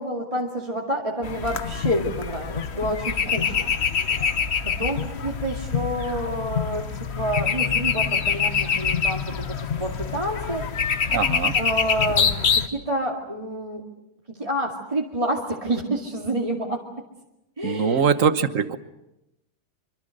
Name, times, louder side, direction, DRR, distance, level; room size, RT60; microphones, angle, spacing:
voice 1, 0.0-3.8 4.1-4.2 4.6-6.9 7.2-10.6 11.5-12.3 12.5-13.8 14.3-16.8 17.6-18.1 18.6-18.8, right 1 dB, 15° right, -2 dB, 2.3 m, -28 dB
sound 1, 1.2-12.7, left 6 dB, 45° left, 0.9 m, -25 dB
voice 2, 11.1-11.6 17.6-18.8, right 6 dB, 50° right, 11 dB, 1.1 m, -22 dB
25.5 x 25.5 x 6.6 m, 0.91 s
omnidirectional pair, 2.3 m